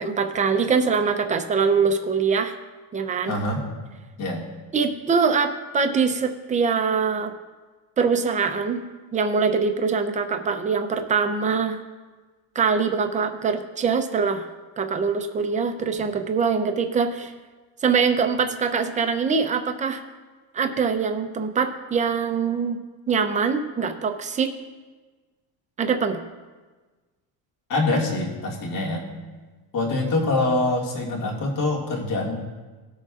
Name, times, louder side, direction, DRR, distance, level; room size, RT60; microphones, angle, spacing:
voice 1, 0.0-2.6 2.9-3.3 4.7-7.3 8.0-8.8 9.1-11.8 12.5-14.5 14.8-17.3 17.8-20.0 20.5-22.8 23.1-24.5 25.8-26.2, right 5 dB, 20° right, 6 dB, 0.5 m, -23 dB
voice 2, 3.3-3.6 4.2-4.4 27.7-29.0 29.7-32.3, left 2 dB, 55° left, -2 dB, 2.1 m, -24 dB
19.0 x 6.7 x 2.4 m, 1.3 s
cardioid pair, 170°, 39 cm